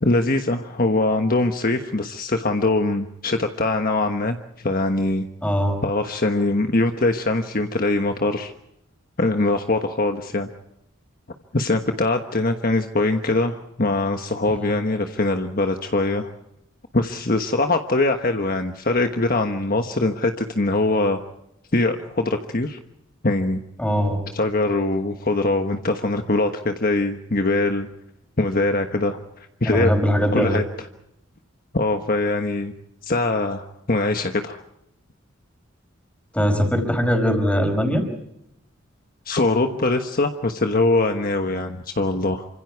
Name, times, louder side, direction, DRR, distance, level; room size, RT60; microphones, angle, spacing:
voice 1, 0.0-5.3 5.8-8.5 9.2-10.5 11.5-16.3 16.9-21.2 21.7-22.8 23.2-23.6 24.3-27.9 28.4-29.2 29.6-29.9 30.3-30.6 31.7-32.7 33.0-34.6 39.3-42.5, left 2 dB, 45° left, 6 dB, 1.3 m, -22 dB
voice 2, 5.4-5.8 23.8-24.2 29.7-30.6 36.3-38.0, equal, 5° left, 5 dB, 5.0 m, -20 dB
28.5 x 25.5 x 4.7 m, 0.79 s
head